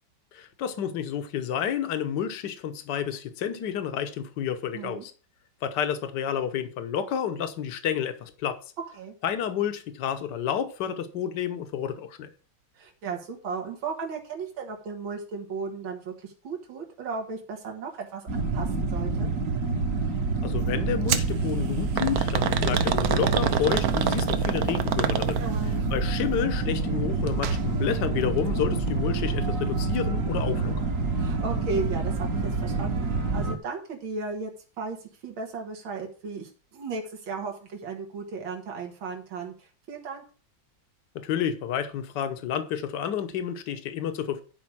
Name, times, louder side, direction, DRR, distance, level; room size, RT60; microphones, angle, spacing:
voice 1, 0.3-5.1 5.6-8.6 9.2-12.3 20.4-25.4 25.9-30.7 41.1-44.4, left 9 dB, 65° left, 1.6 m, -30 dB
voice 2, 4.7-5.1 8.8-9.1 12.8-19.3 25.4-25.9 31.2-34.5 34.8-35.0 35.2-40.2, right 4 dB, 80° right, 2.4 m, -35 dB
sound 1, 18.3-33.5, right 3 dB, 45° right, 1.6 m, -27 dB
sound 2, 21.1-21.3 22.0-25.7 27.3-27.6 27.9-28.0 28.9-29.0, right 9 dB, 65° right, 1.0 m, -27 dB
11.0 x 5.0 x 6.0 m
omnidirectional pair, 2.1 m